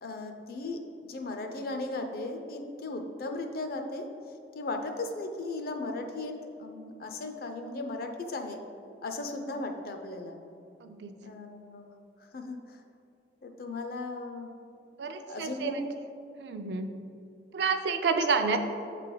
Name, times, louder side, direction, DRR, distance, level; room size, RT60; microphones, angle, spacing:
voice 1, 0.0-4.1 4.5-8.6 9.0-10.4 11.2-11.9 12.2-12.8 13.4-14.5 15.2-15.8, left 2 dB, 55° left, 5 dB, 0.5 m, -37 dB
voice 2, 10.8-11.1 15.0-15.8 16.4-16.9 17.5-18.6, right 5 dB, 70° right, 7 dB, 0.4 m, -29 dB
8.0 x 3.3 x 3.8 m, 2.6 s
head